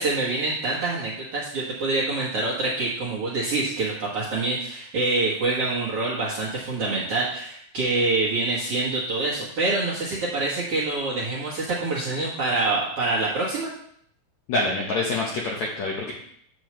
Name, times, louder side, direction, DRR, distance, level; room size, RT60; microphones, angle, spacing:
voice 1, 0.0-13.7, right 2 dB, 55° right, -7 dB, 1.7 m, -26 dB
voice 2, 14.5-16.1, left 2 dB, 70° left, -2 dB, 1.7 m, -26 dB
9.7 x 7.1 x 3.1 m, 0.66 s
omnidirectional pair, 4.6 m